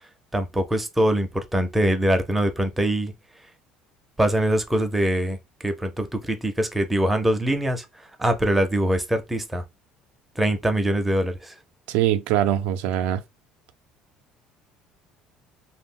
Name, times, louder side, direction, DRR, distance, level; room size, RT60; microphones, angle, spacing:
voice 1, 0.3-3.1 4.2-9.6 10.4-11.6, right 1 dB, 5° right, 0.5 m, -23 dB
voice 2, 11.9-13.2, right 11 dB, 80° right, 0.3 m, -22 dB
2.2 x 2.0 x 3.6 m
cardioid pair, 130°, 2 cm